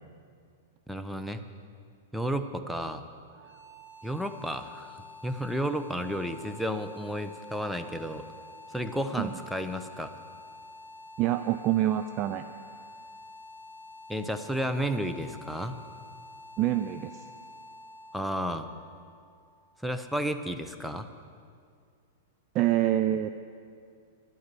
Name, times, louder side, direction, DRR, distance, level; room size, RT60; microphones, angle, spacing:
voice 1, 0.9-1.4 2.1-3.0 4.0-8.2 8.7-10.1 14.1-15.8 18.1-18.7 19.8-21.1, equal, ahead, 7 dB, 0.8 m, -32 dB
sound 1, 3.3-20.2, left 2 dB, 75° right, 3.7 m, -48 dB
voice 2, 11.2-12.4 16.6-17.2 22.5-23.3, right 13 dB, 40° right, 10 dB, 0.4 m, -26 dB
11.5 x 9.5 x 7.6 m, 2.2 s
hypercardioid pair, 115°, 0 cm